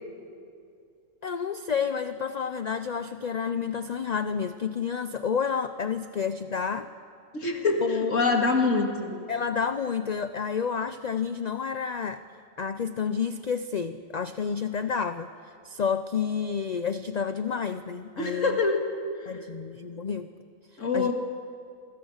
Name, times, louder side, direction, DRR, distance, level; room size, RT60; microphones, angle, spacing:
voice 1, 1.2-6.9 7.8-8.2 9.3-12.2 12.6-18.6 19.3-20.3 20.9-21.1, left 6 dB, 45° left, 11 dB, 0.6 m, -30 dB
voice 2, 7.3-9.1 18.2-18.8 19.1-19.5 20.8-21.1, left 4 dB, 65° left, 3 dB, 2.7 m, -25 dB
28.5 x 24.5 x 6.5 m, 2.4 s
omnidirectional pair, 1.4 m